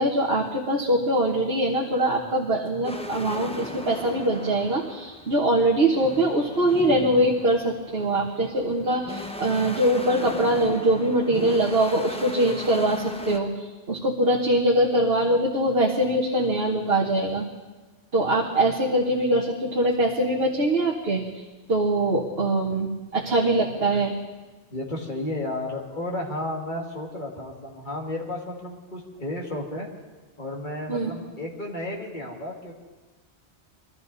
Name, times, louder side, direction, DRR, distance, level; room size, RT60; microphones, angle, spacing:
voice 1, 0.0-17.5 18.1-21.2 21.7-24.1 30.9-31.1, right 1 dB, 60° right, -4 dB, 1.8 m, -23 dB
sound 1, 2.8-13.4, equal, 5° left, 0.8 m, -37 dB
voice 2, 23.4-23.8 24.7-29.9 30.4-32.7, left 1 dB, 45° left, -1 dB, 2.4 m, -33 dB
22.5 x 14.0 x 4.1 m, 1.2 s
omnidirectional pair, 1.2 m